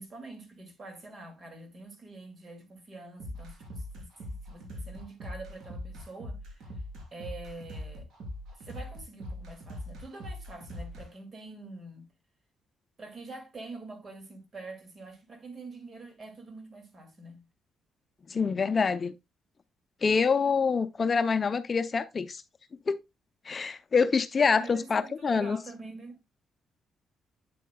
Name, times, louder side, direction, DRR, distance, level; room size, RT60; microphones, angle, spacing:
voice 1, 0.0-6.8 7.1-8.1 8.5-12.1 13.0-17.5 24.5-26.2, right 3 dB, 40° right, 2.3 m, -45 dB
sound 1, 3.2-11.1, left 1 dB, 70° right, 3.4 m, -41 dB
voice 2, 18.3-19.1 20.0-22.4 22.9-23.0 23.5-25.6, left 5 dB, 35° left, 0.5 m, -26 dB
8.5 x 7.5 x 2.2 m
cardioid pair, 90°, 0 cm